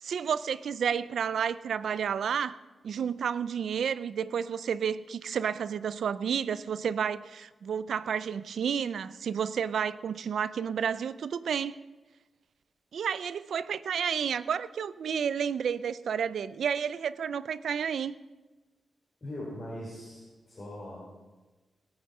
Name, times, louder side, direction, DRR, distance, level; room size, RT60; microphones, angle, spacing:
voice 1, 0.0-2.6 2.8-11.8 12.9-18.1, right 7 dB, 80° right, 0.4 m, -31 dB
voice 2, 19.2-21.0, left 1 dB, 30° left, 4.3 m, -40 dB
18.0 x 8.9 x 5.4 m
wide cardioid pair, 140°, 0 cm